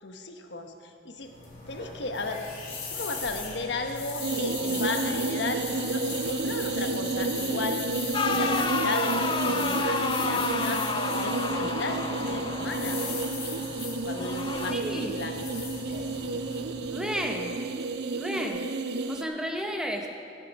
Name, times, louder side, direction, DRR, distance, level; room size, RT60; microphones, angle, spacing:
voice 1, 0.0-1.3 1.7-2.5 2.9-7.8 8.3-10.8 11.2-13.0 14.0-15.5, left 3 dB, 75° left, 5 dB, 1.0 m, -35 dB
sound 1, 1.2-17.4, left 4 dB, 45° left, 2.8 m, -39 dB
sound 2, 4.2-19.2, right 3 dB, 65° right, 0.5 m, -31 dB
sound 3, 8.1-13.3 14.1-14.7, left 4 dB, 25° left, 0.4 m, -30 dB
voice 2, 14.7-15.2 16.9-17.6 18.1-18.6 19.1-20.1, equal, 5° right, 2 dB, 0.8 m, -32 dB
16.5 x 8.3 x 5.3 m, 2.6 s
head